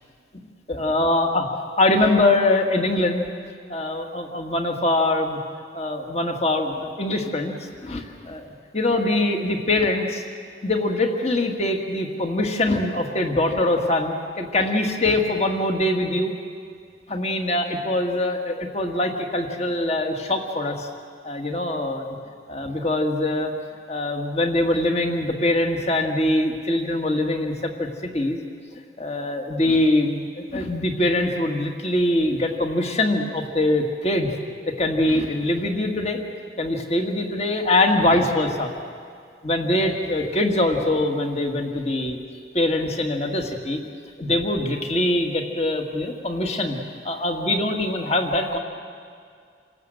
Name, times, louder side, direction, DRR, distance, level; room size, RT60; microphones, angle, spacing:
voice 1, 0.7-1.5 1.8-3.3 3.7-5.4 5.7-8.5 8.7-10.2 10.6-16.3 17.1-20.9 21.2-22.2 22.5-23.5 23.9-27.9 28.1-28.4 28.7-34.3 34.7-36.2 36.6-38.7 39.4-42.2 42.5-43.8 44.2-46.8 47.0-48.6, left 1 dB, 35° left, 3 dB, 1.9 m, -23 dB
28.0 x 18.0 x 7.9 m, 2.2 s
head